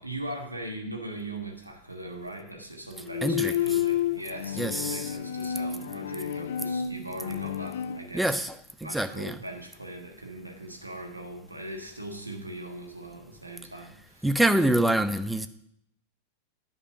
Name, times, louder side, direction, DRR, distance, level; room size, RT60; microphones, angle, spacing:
voice 1, 0.0-8.4 8.8-14.3, right 1 dB, 85° right, 1.4 m, -40 dB
Bowed string instrument, 3.0-8.0, left 9 dB, 60° left, 0.4 m, -30 dB
voice 2, 3.2-3.8 4.5-5.2 8.1-9.4 14.2-15.5, right 1 dB, 5° right, 0.6 m, -26 dB
10.0 x 5.3 x 5.8 m
figure-of-eight pair, 90°, 0 cm